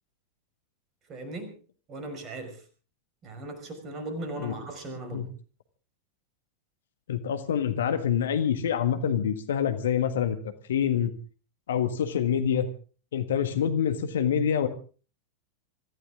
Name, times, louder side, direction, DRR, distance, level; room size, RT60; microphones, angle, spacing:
voice 1, 1.1-1.5 1.9-2.6 3.2-5.3, right 1 dB, 30° right, 7 dB, 5.5 m, -38 dB
voice 2, 7.1-11.1 11.7-12.7 13.1-14.7, left 8 dB, 60° left, 9 dB, 1.7 m, -26 dB
25.5 x 15.0 x 3.7 m, 0.38 s
figure-of-eight pair, 90°, 0 cm